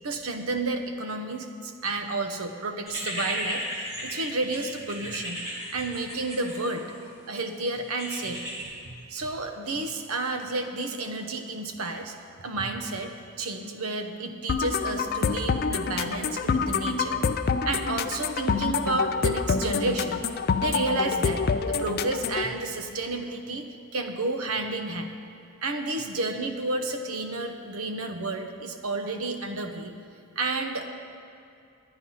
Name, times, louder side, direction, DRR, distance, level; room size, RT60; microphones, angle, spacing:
voice 1, 0.0-5.4 5.7-6.9 7.3-8.7 9.1-17.2 17.6-20.2 20.6-23.7 23.9-25.1 25.6-29.9 30.4-30.9, right 2 dB, 75° right, 6 dB, 0.9 m, -31 dB
sound 1, 2.9-7.1 8.0-8.6, equal, 30° right, 3.1 m, -34 dB
sound 2, 14.5-22.5, left 5 dB, 45° left, 0.4 m, -27 dB
10.5 x 9.8 x 5.6 m, 2.4 s
head